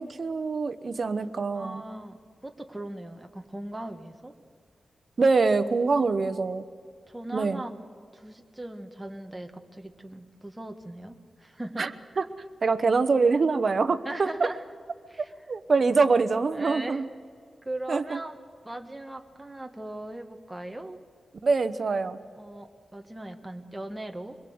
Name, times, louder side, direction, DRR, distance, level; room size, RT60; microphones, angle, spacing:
voice 1, 0.0-1.8 5.2-6.6 7.3-7.6 11.8-11.9 12.2-12.3 12.6-14.5 15.5-17.0 17.9-18.2 21.4-22.2, right 4 dB, 50° right, 11 dB, 1.0 m, -24 dB
voice 2, 1.5-4.3 7.1-7.8 8.1-11.9 14.0-14.6 15.1-15.3 16.5-17.0 17.6-21.0 22.4-24.4, right 1 dB, 10° right, 4 dB, 1.5 m, -39 dB
24.5 x 22.0 x 7.9 m, 2.1 s
wide cardioid pair, 125°, 0 cm